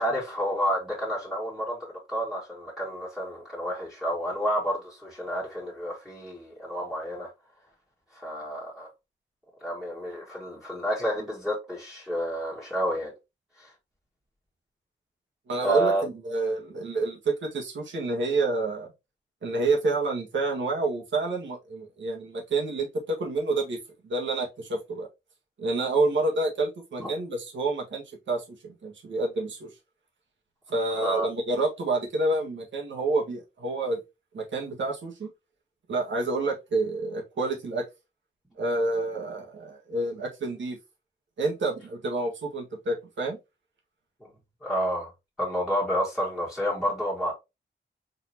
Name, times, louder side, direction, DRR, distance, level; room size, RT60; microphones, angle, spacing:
voice 1, 0.0-7.3 8.1-8.9 9.6-13.1 13.6-13.7 15.6-16.0 27.0-27.1 31.0-31.3 44.6-45.1 45.4-47.3, equal, ahead, 1.7 m, -29 dB
voice 2, 15.5-18.9 19.4-23.8 24.0-25.1 25.6-29.7 30.7-34.0 34.3-35.3 35.9-37.8 38.6-40.8 41.4-43.4, right 2 dB, 85° right, 1.5 m, -28 dB
4.0 x 3.8 x 2.7 m
cardioid pair, 80°, 19 cm